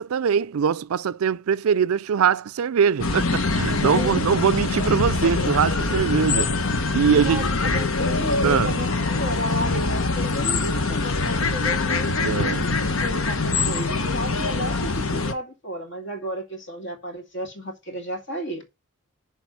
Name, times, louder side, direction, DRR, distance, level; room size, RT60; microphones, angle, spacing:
voice 1, 0.0-6.5 6.9-7.4 8.4-8.8 12.2-12.7, right 7 dB, 80° right, 0.4 m, -22 dB
sound 1, 3.0-15.3, left 3 dB, 70° left, 1.0 m, -24 dB
voice 2, 3.8-4.3 4.7-5.0 7.1-18.6, equal, 55° left, 2.5 m, -33 dB
10.5 x 3.5 x 5.7 m
head